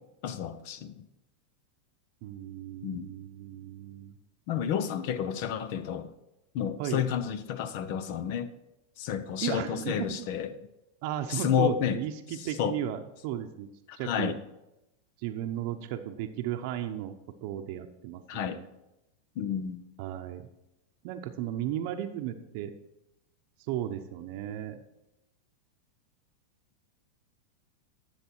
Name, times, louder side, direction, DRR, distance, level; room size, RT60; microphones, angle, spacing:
voice 1, 0.2-1.1 2.8-3.1 4.5-6.1 6.5-8.5 9.0-10.5 11.3-12.0 12.6-12.8 13.9-14.4 18.3-18.6 19.4-19.8, left 8 dB, 60° left, 13 dB, 0.9 m, -30 dB
voice 2, 2.2-4.2 6.8-7.0 9.4-10.3 11.0-13.7 14.0-14.4 15.2-17.1 17.4-18.7 20.0-20.5 21.0-22.7 23.6-24.8, right 11 dB, 60° right, 4 dB, 0.7 m, -35 dB
10.5 x 7.2 x 4.5 m, 0.92 s
hypercardioid pair, 120°, 0 cm